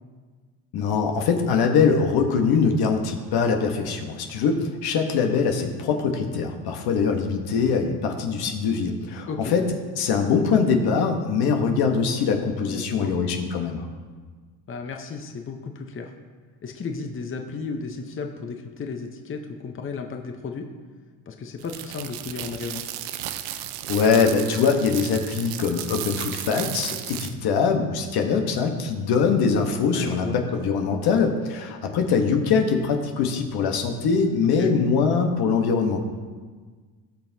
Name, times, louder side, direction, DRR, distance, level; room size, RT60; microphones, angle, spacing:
voice 1, 0.7-9.6 10.0-13.9 23.9-36.0, left 5 dB, 70° left, 3 dB, 1.2 m, -22 dB
voice 2, 12.6-13.1 14.7-16.1 16.6-20.7 21.3-22.9 29.9-30.4 34.5-34.7, left 4 dB, 30° left, 4 dB, 0.9 m, -34 dB
sound 1, 21.6-27.3, right 12 dB, 80° right, 0.6 m, -34 dB
17.5 x 5.8 x 2.8 m, 1.5 s
supercardioid pair, 80°, 39 cm